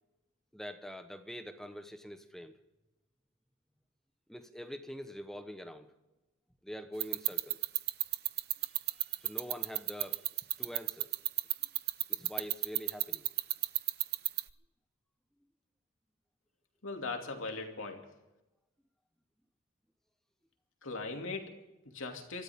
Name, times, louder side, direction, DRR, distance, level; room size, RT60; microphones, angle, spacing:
voice 1, 0.5-2.5 4.3-5.9 6.6-7.6 9.2-10.3 10.6-11.1 12.1-13.3, equal, ahead, 8 dB, 1.0 m, -44 dB
sound 1, 7.0-14.5, right 17 dB, 50° right, 0.6 m, -29 dB
voice 2, 16.8-18.0 20.8-22.4, left 3 dB, 85° left, 3 dB, 2.6 m, -40 dB
25.5 x 13.5 x 3.6 m, 1.0 s
head